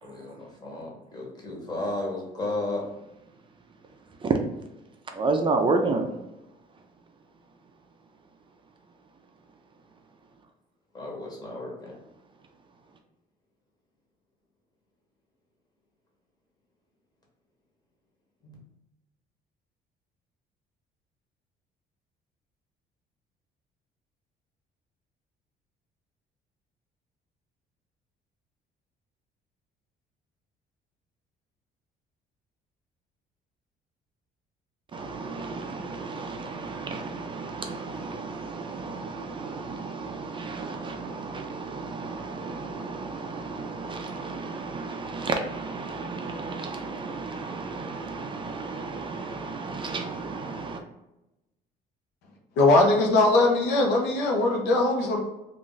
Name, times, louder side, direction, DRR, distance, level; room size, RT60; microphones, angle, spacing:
voice 1, 0.0-2.8 10.9-11.9 18.4-18.6, left 2 dB, 25° left, -2 dB, 1.1 m, -34 dB
voice 2, 5.2-6.1 34.9-50.8, right 3 dB, 30° right, 4 dB, 0.4 m, -32 dB
voice 3, 52.6-55.2, left 2 dB, 90° left, 0 dB, 0.7 m, -20 dB
2.5 x 2.4 x 3.8 m, 0.94 s
cardioid pair, 110°, 17 cm